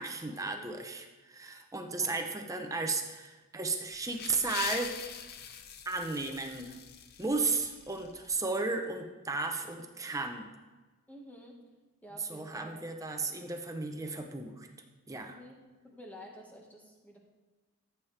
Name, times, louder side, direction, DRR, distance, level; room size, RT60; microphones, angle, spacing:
voice 1, 0.0-5.0 5.9-6.8 7.2-10.5 12.2-14.7 15.1-15.4, right 3 dB, 15° right, 4 dB, 0.6 m, -34 dB
voice 2, 1.9-2.2 11.1-11.7 12.0-12.8 15.3-15.6 15.8-17.2, equal, 5° left, -1 dB, 1.4 m, -50 dB
sound 1, 3.8-8.4, left 7 dB, 45° left, 0.6 m, -43 dB
13.5 x 7.3 x 3.3 m, 1.3 s
head